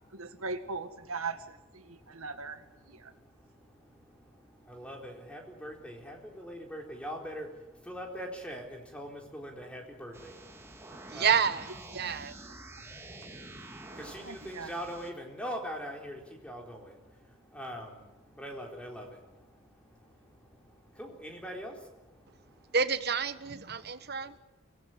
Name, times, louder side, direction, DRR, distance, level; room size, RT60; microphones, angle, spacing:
voice 1, 0.1-3.1 11.9-12.3 13.9-14.7, right 4 dB, 85° right, 9 dB, 2.0 m, -40 dB
voice 2, 4.7-7.5 7.9-8.7 8.9-10.3 11.1-11.4 14.0-16.9 17.5-17.9 18.4-19.1 21.0-21.7, equal, 5° left, 1 dB, 4.1 m, -41 dB
sound 1, 10.1-15.1, right 2 dB, 10° right, 2.2 m, -48 dB
voice 3, 10.9-11.7 11.9-12.3 22.7-24.4, right 6 dB, 50° right, 12 dB, 1.2 m, -29 dB
24.5 x 18.5 x 9.7 m, 0.99 s
head